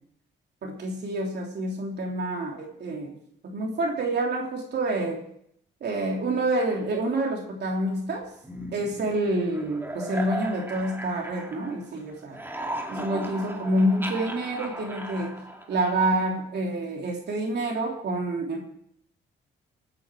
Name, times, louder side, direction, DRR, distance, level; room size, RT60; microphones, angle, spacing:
voice 1, 0.6-3.2 3.4-5.2 5.8-8.3 8.7-12.4 12.9-15.3 15.7-18.6, right 1 dB, 60° right, 0 dB, 3.3 m, -27 dB
sound 1, 8.4-11.9 12.2-16.3, right 1 dB, 10° right, 2.3 m, -37 dB
21.5 x 9.9 x 4.9 m, 0.70 s
cardioid pair, 90°, 20 cm